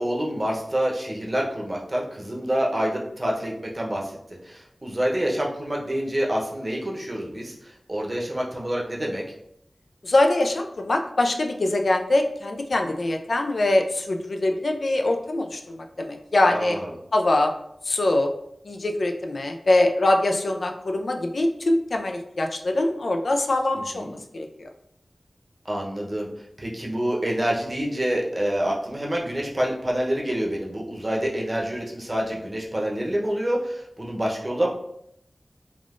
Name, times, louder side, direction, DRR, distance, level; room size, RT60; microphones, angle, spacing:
voice 1, 0.0-4.2 4.4-9.2 16.4-17.0 23.9-24.1 25.6-26.3 26.6-34.7, right 1 dB, 35° right, -2 dB, 0.7 m, -27 dB
voice 2, 10.0-16.8 17.1-17.5 17.9-18.3 18.6-24.7, left 2 dB, 75° left, 4 dB, 0.3 m, -23 dB
3.4 x 2.4 x 2.4 m, 0.75 s
wide cardioid pair, 65°, 0 cm